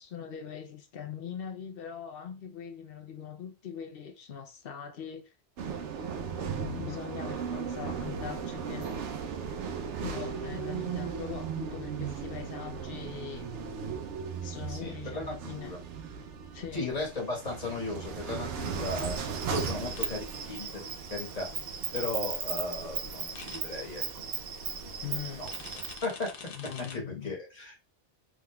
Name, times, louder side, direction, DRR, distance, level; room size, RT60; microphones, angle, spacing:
voice 1, 0.0-5.3 6.6-9.0 10.0-13.5 14.4-15.8 16.5-16.9 20.8-20.9 25.0-25.4 26.5-27.3, left 8 dB, 60° left, 0.8 m, -41 dB
sound 1, 5.6-20.6, right 6 dB, 85° right, 0.9 m, -37 dB
voice 2, 14.7-15.8 16.7-20.8 21.1-21.5 21.9-24.2 25.4-25.5 26.0-26.3 26.9-27.7, left 2 dB, 35° left, 1.4 m, -36 dB
Insect, 18.6-26.0, right 6 dB, 60° right, 0.8 m, -37 dB
sound 2, 20.0-20.1 23.3-23.6 25.5-27.0, left 5 dB, 75° left, 1.1 m, -45 dB
3.6 x 3.4 x 2.3 m
omnidirectional pair, 1.2 m